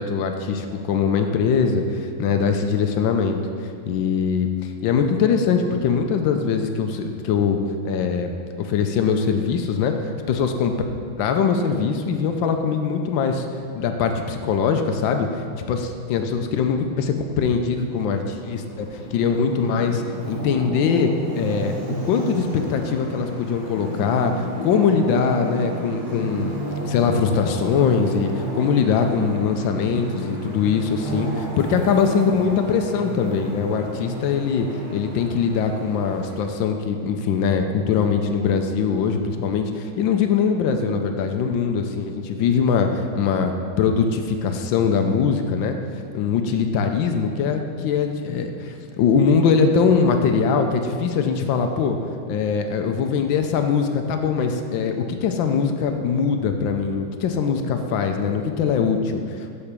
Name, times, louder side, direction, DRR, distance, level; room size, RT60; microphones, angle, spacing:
voice 1, 0.0-3.4 3.9-7.6 7.8-8.3 8.6-10.7 11.2-13.5 13.7-21.7 22.0-26.6 26.9-43.5 43.8-45.8 46.1-52.0 52.3-59.5, left 6 dB, 75° left, 5 dB, 1.2 m, -22 dB
Traffic noise roadway noise, 17.9-36.4, right 1 dB, 85° right, 2.9 m, -32 dB
7.1 x 4.4 x 6.7 m, 2.3 s
omnidirectional pair, 2.3 m